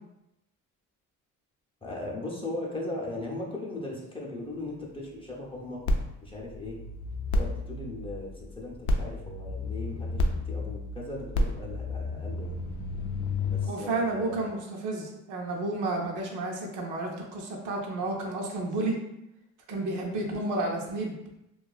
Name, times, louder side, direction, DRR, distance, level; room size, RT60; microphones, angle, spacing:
voice 1, 1.8-5.8 6.2-6.8 7.4-12.5 13.4-14.5, left 2 dB, 15° left, -3 dB, 0.6 m, -38 dB
sound 1, 5.9-13.7, left 2 dB, 75° left, 0.4 m, -31 dB
voice 2, 13.6-19.0 19.7-21.2, right 2 dB, 75° right, 0 dB, 0.6 m, -31 dB
2.6 x 2.3 x 2.3 m, 0.88 s
cardioid pair, 100°, 31 cm